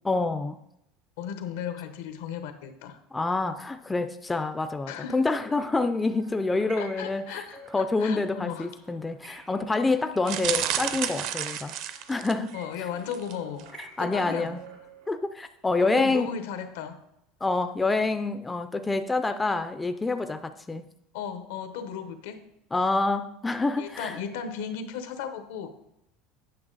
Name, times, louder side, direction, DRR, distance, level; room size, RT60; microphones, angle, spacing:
voice 1, 0.0-0.6 3.1-7.4 7.7-11.8 12.1-12.6 14.0-14.6 15.1-16.3 17.4-20.9 22.7-24.2, left 3 dB, 10° left, 0.3 m, -27 dB
voice 2, 1.2-3.0 4.9-5.2 6.8-8.7 12.5-13.7 14.0-14.6 15.8-17.0 21.1-22.4 23.8-25.7, left 7 dB, 85° left, 1.0 m, -35 dB
sound 1, 5.4-15.1, right 3 dB, 85° right, 2.9 m, -51 dB
sound 2, 10.2-12.5 13.1-13.3 13.6-13.7, right 10 dB, 55° right, 0.5 m, -31 dB
8.8 x 6.2 x 3.9 m
cardioid pair, 160°, 0 cm